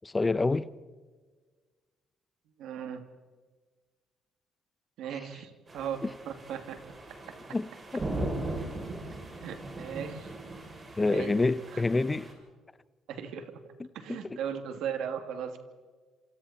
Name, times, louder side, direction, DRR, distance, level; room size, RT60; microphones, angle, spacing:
voice 1, 0.0-0.7 7.5-7.7 11.0-12.3 14.1-14.4, left 3 dB, 20° left, 0.7 m, -27 dB
voice 2, 2.6-3.0 5.0-6.0 6.3-6.8 9.4-10.3 11.1-11.4 11.7-11.9 13.1-13.5 13.9-15.6, right 8 dB, 80° right, 2.6 m, -37 dB
sound 1, 5.7-12.3, right 2 dB, 30° right, 6.9 m, -39 dB
28.5 x 27.0 x 4.4 m
cardioid pair, 90°, 0 cm